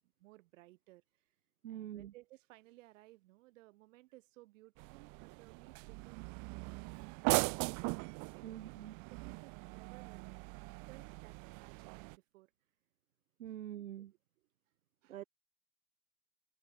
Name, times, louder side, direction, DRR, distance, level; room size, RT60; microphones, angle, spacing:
voice 1, 0.2-1.0 1.7-6.9 8.2-8.8 9.1-10.5 10.9-12.5 13.5-13.6 15.0-15.3, right 19 dB, 70° right, 7.4 m, -60 dB
voice 2, 1.6-2.1 8.4-8.9 13.4-14.1 15.1-15.2, right 12 dB, 85° right, 0.8 m, -45 dB
sound 1, 4.8-12.2, right 35 dB, 50° right, 0.6 m, -39 dB
hypercardioid pair, 80°, 40 cm